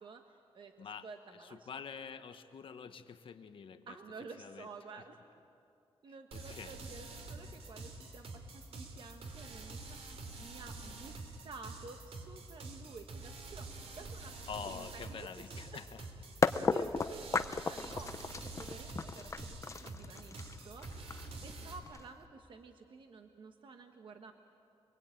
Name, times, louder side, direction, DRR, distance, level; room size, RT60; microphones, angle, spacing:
voice 1, 0.0-1.7 3.9-5.2 6.0-11.2 11.4-15.8 16.7-20.4 20.6-21.1 21.4-24.3, right 4 dB, 50° right, 5 dB, 1.2 m, -51 dB
voice 2, 1.4-4.0 4.4-4.7 6.3-6.8 14.5-16.1, left 6 dB, 60° left, 9 dB, 1.2 m, -46 dB
sound 1, 6.3-21.8, right 3 dB, 75° right, 3.3 m, -47 dB
sound 2, 16.4-22.3, left 4 dB, 30° left, 0.6 m, -34 dB
29.0 x 22.0 x 9.0 m, 2.6 s
wide cardioid pair, 170°, 10 cm